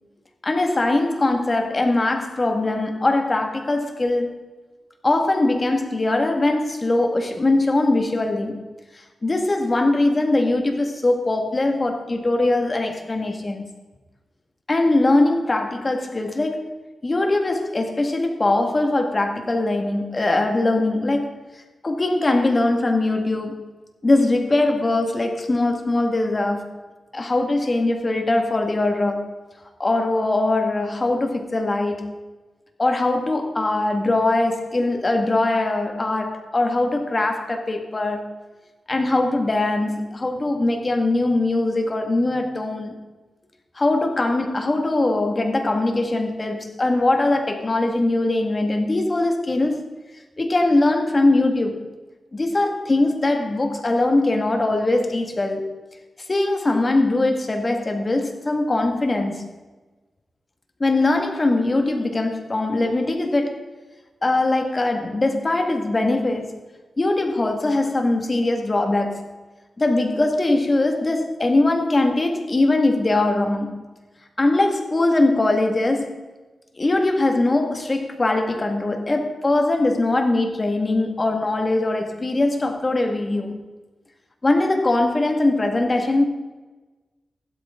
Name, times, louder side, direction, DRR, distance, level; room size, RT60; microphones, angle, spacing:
voice 1, 0.4-4.4 5.0-8.6 8.9-13.7 14.7-23.7 24.0-26.8 27.1-29.3 29.8-32.2 32.8-38.3 38.9-43.0 43.8-49.9 50.4-51.9 52.3-55.7 56.3-59.5 60.8-63.6 64.2-66.6 67.0-69.3 69.8-73.8 74.4-76.2 76.8-83.6 84.4-86.3, left 2 dB, 30° left, 2.0 m, -21 dB
15.5 x 12.0 x 3.8 m
wide cardioid pair, 95°, 0 cm